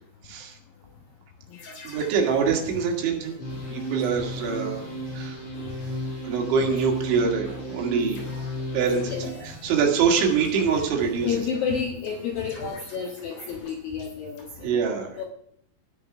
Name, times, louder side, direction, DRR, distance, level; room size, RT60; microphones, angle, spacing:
voice 1, 0.2-0.6 1.8-4.9 5.1-5.4 6.2-8.3 8.7-9.2 9.6-11.4 14.6-15.3, right 6 dB, 70° right, 2 dB, 4.3 m, -25 dB
sound 1, 1.5-6.4 6.6-14.4, left 2 dB, 55° left, 5.1 m, -44 dB
sound 2, 3.4-9.3, equal, 30° left, 6.0 m, -33 dB
voice 2, 6.4-6.8 9.1-9.3 11.2-15.2, left 6 dB, 75° left, 2 dB, 2.1 m, -31 dB
14.0 x 9.7 x 6.0 m, 0.68 s
omnidirectional pair, 5.7 m